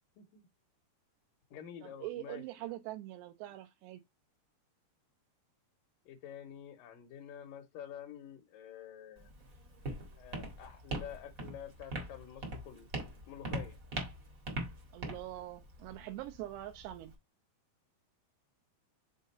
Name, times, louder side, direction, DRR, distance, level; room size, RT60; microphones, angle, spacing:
voice 1, 0.2-0.5 1.5-2.4 6.1-9.3 10.2-12.9 13.3-13.8, left 9 dB, 75° left, 2.1 m, -48 dB
voice 2, 1.8-4.0 14.9-17.1, right 15 dB, 90° right, 2.8 m, -43 dB
Walk footsteps, 9.2-17.1, right 1 dB, 65° right, 0.8 m, -42 dB
6.6 x 3.7 x 4.1 m
omnidirectional pair, 4.8 m